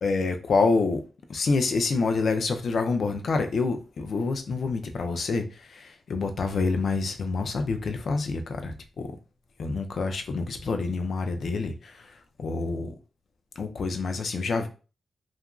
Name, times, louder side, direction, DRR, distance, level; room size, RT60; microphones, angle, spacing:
voice 1, 0.0-1.0 1.3-9.2 9.6-12.9 13.6-14.7, left 4 dB, 65° left, 0.4 m, -27 dB
2.8 x 2.5 x 2.3 m
cardioid pair, 95°, 0 cm